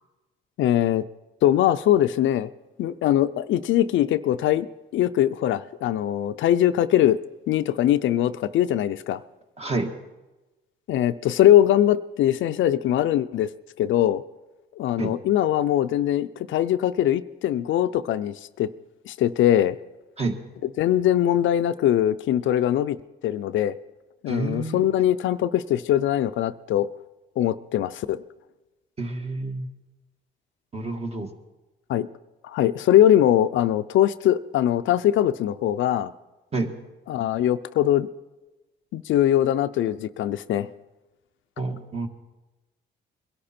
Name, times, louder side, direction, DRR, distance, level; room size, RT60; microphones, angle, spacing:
voice 1, 0.6-1.0 1.4-2.5 2.8-4.7 4.9-7.2 7.5-9.2 10.9-13.5 13.8-14.2 14.8-18.7 19.1-19.8 20.8-23.0 23.2-23.7 24.2-26.9 27.4-28.2 31.9-32.1 32.4-36.1 37.1-38.1 38.9-40.7, left 12 dB, 75° left, 12 dB, 0.5 m, -21 dB
voice 2, 9.6-9.9 15.0-15.1 20.2-20.4 24.3-24.8 29.0-29.7 30.7-31.3 36.5-36.7 41.6-42.1, right 3 dB, 30° right, 5 dB, 1.6 m, -28 dB
22.0 x 12.0 x 4.3 m, 1.1 s
cardioid pair, 90°, 20 cm